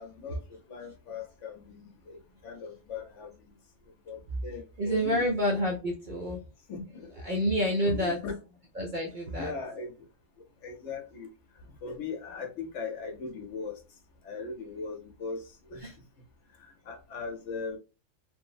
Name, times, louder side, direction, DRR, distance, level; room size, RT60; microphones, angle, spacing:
voice 1, 0.0-3.3 4.1-5.3 6.7-7.1 7.8-8.4 9.3-10.1 10.6-11.3 11.8-13.8 14.2-15.9 16.6-17.8, left 4 dB, 65° left, 0.9 m, -39 dB
voice 2, 4.8-6.4 7.2-8.2 8.8-9.5 15.8-15.9, equal, 55° right, 0.5 m, -28 dB
3.2 x 2.0 x 2.3 m
omnidirectional pair, 1.4 m